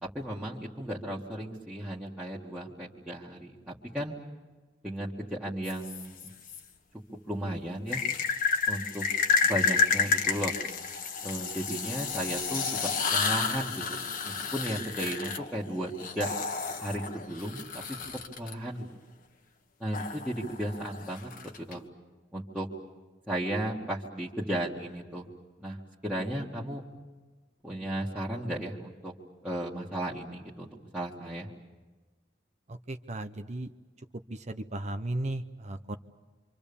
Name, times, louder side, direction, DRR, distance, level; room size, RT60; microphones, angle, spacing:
voice 1, 0.0-4.2 4.8-6.3 7.3-8.0 8.7-9.1 9.4-10.5 11.2-16.3 16.8-17.7 18.4-18.8 19.8-21.3 21.7-21.8 22.3-22.7 23.3-25.3 25.6-25.8 26.0-26.8 27.6-29.1 29.4-31.5, right 1 dB, 5° right, -7 dB, 2.0 m, -35 dB
sound 1, 5.6-6.6 7.9-18.5 19.9-21.7, left 5 dB, 45° left, 1.5 m, -30 dB
voice 2, 32.7-33.7 34.3-36.0, right 1 dB, 40° right, 8 dB, 0.8 m, -35 dB
26.5 x 26.5 x 7.1 m, 1.3 s
head